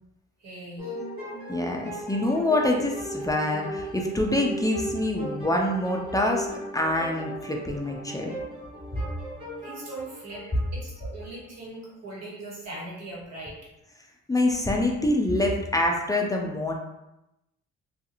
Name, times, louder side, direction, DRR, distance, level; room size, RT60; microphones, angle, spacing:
voice 1, 0.4-0.9 9.6-10.4 10.7-13.5, right 2 dB, 60° right, -5 dB, 1.3 m, -40 dB
sound 1, 0.8-11.3, equal, 20° right, 1.3 m, -37 dB
voice 2, 1.5-8.3 14.3-16.7, left 1 dB, 10° left, 0 dB, 0.4 m, -26 dB
2.7 x 2.4 x 2.6 m, 0.91 s
cardioid pair, 90°, 30 cm